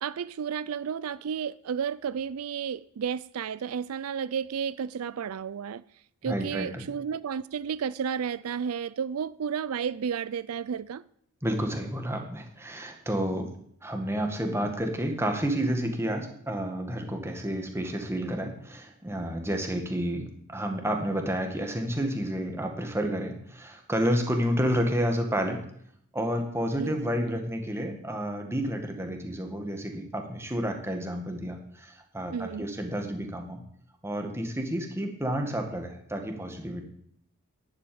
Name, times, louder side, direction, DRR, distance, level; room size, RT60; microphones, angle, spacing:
voice 1, 0.0-5.8 6.2-11.0 19.7-19.8 26.8-27.0 27.3-27.4 32.3-32.7, right 7 dB, 80° right, 0.4 m, -32 dB
voice 2, 6.2-6.9 11.4-13.5 13.8-25.6 26.1-33.6 34.0-36.8, equal, 10° right, 1.8 m, -30 dB
11.0 x 7.9 x 8.7 m
head